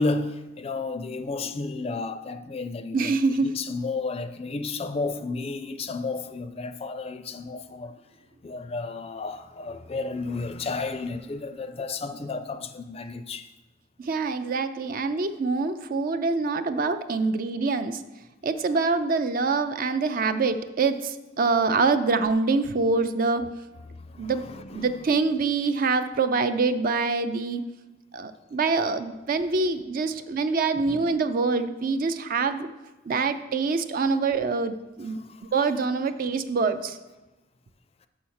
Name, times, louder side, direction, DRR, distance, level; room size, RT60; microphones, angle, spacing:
voice 1, 0.0-8.0 8.4-13.5 24.0-24.9 30.9-31.0 35.2-35.4, left 3 dB, 30° left, 0.4 m, -32 dB
voice 2, 2.9-3.5 14.0-18.0 18.4-23.4 24.2-24.4 24.7-27.6 28.1-32.7 33.1-35.2 35.5-37.0, right 4 dB, 45° right, 0.4 m, -25 dB
6.3 x 5.6 x 6.3 m
head